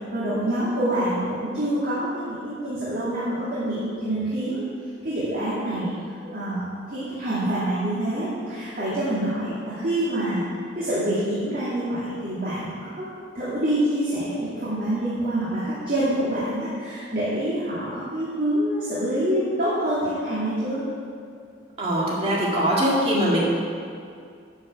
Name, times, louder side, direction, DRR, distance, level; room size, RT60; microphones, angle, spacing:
voice 1, 0.1-4.6 5.0-6.0 6.2-10.5 10.7-13.1 13.3-20.8, right 1 dB, 50° right, -10 dB, 2.4 m, -26 dB
voice 2, 21.8-23.4, equal, 30° right, -5 dB, 2.2 m, -22 dB
12.0 x 5.4 x 6.9 m, 2.3 s
head